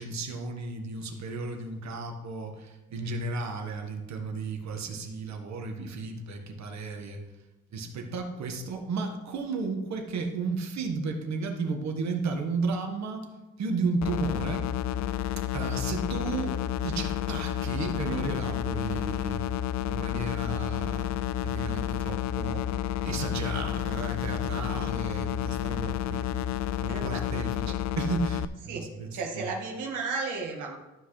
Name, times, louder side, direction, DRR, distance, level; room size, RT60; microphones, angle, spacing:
voice 1, 0.0-7.2 7.7-13.3 13.6-14.7 15.5-19.5 19.9-22.7 23.0-26.4 26.8-29.1 29.3-29.4, right 3 dB, 65° right, 3 dB, 1.6 m, -33 dB
sound 1, 14.0-28.4, left 11 dB, 65° left, 0.5 m, -30 dB
voice 2, 26.9-27.4 28.7-30.8, right 4 dB, 85° right, 0 dB, 1.8 m, -34 dB
13.0 x 6.0 x 3.3 m, 1.1 s
cardioid pair, 90°, 30 cm